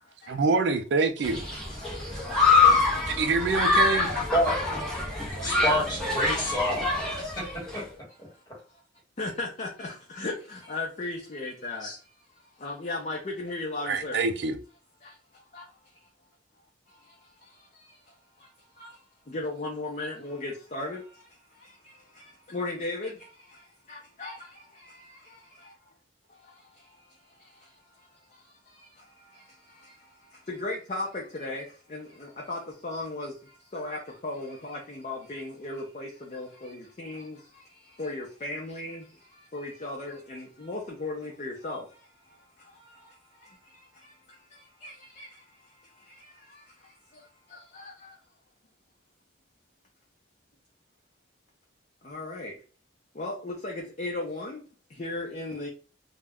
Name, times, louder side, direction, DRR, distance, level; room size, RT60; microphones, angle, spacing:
voice 1, 0.3-1.4 3.1-4.1 13.9-14.6, right 4 dB, 60° right, 0.4 m, -25 dB
Human group actions, 1.2-7.8, left 4 dB, 5° left, 0.7 m, -25 dB
voice 2, 5.4-7.8 8.2-8.3 11.8-12.0, equal, 20° left, 1.2 m, -28 dB
voice 3, 9.2-9.9 10.2-11.9 12.6-14.2 19.3-21.0 22.5-23.1 23.9-24.3 30.5-31.6 31.9-32.1 32.5-33.3 33.7-37.3 38.0-39.0 39.5-41.8 44.8-44.9 45.2-45.3 47.7-47.9 52.1-52.5 53.2-54.6 55.0-55.7, left 2 dB, 40° left, 0.5 m, -35 dB
2.3 x 2.1 x 3.4 m
head